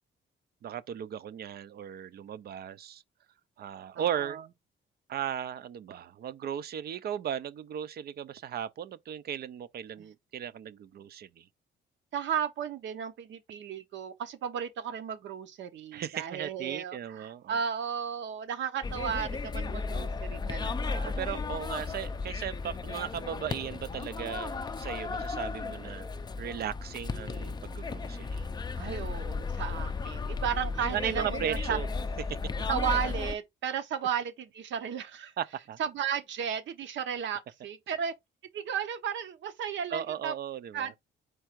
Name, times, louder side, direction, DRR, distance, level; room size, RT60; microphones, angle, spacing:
voice 1, 0.6-3.0 3.6-4.4 5.1-11.5 15.9-17.6 21.2-26.1 26.4-28.5 30.9-31.9 32.3-32.4 35.4-35.8 39.9-40.9, right 9 dB, 55° right, 0.4 m, -36 dB
voice 2, 4.0-4.4 10.0-10.1 12.1-21.1 28.8-31.8 32.7-35.3 35.8-38.1 38.5-40.3 40.7-41.0, right 8 dB, 70° right, 0.8 m, -34 dB
sound 1, 18.8-33.4, left 4 dB, 20° left, 0.4 m, -35 dB
4.6 x 2.4 x 4.5 m
cardioid pair, 90°, 20 cm